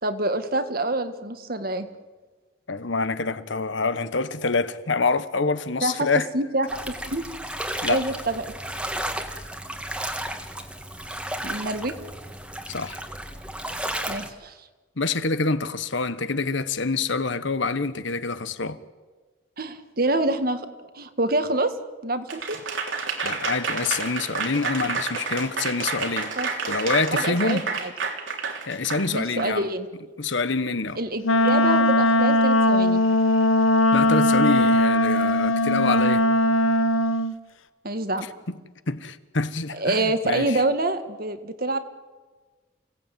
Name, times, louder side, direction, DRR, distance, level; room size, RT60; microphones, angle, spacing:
voice 1, 0.0-1.9 5.8-6.1 6.3-6.7 7.1-7.2 7.9-8.5 11.4-11.9 14.1-14.5 19.6-21.7 22.0-22.4 26.4-26.5 27.1-27.9 29.1-29.9 31.0-33.0 37.8-38.3 39.7-41.8, right 2 dB, 45° right, 1.7 m, -26 dB
voice 2, 2.7-6.3 7.8-8.0 12.7-13.0 15.0-18.8 23.2-26.3 26.7-27.6 28.7-29.7 30.2-31.0 33.9-36.2 38.5-38.6 38.9-40.6, left 3 dB, 65° left, 1.3 m, -26 dB
sound 1, 6.7-14.3, right 1 dB, 5° right, 1.7 m, -33 dB
Applause / Crowd, 22.3-29.5, right 4 dB, 70° right, 3.4 m, -29 dB
Wind instrument woodwind instrument, 31.2-37.3, left 1 dB, 85° left, 1.1 m, -19 dB
29.0 x 17.5 x 9.3 m
head